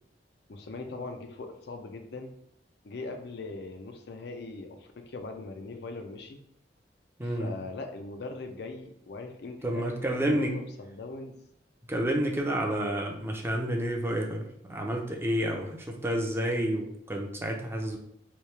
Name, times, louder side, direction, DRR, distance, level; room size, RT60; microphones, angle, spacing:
voice 1, 0.5-2.3 2.8-6.4 7.2-11.4, left 3 dB, 65° left, 5 dB, 0.5 m, -40 dB
voice 2, 7.2-7.6 9.6-10.6 11.9-14.4 14.7-18.0, right 1 dB, 15° right, 1 dB, 0.5 m, -29 dB
3.1 x 2.7 x 3.3 m, 0.75 s
head